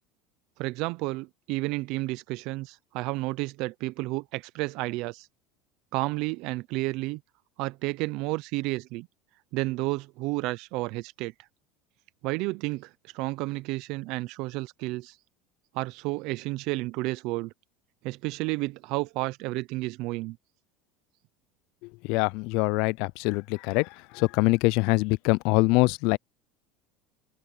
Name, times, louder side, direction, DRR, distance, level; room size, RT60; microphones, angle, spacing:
voice 1, 0.6-5.3 5.9-7.2 7.6-9.1 9.5-11.3 12.2-15.2 15.7-17.5 18.0-20.4, right 22 dB, 55° right, 0.4 m, -31 dB
voice 2, 22.0-26.2, left 25 dB, 60° left, 0.3 m, -24 dB
cardioid pair, 155°, 0 cm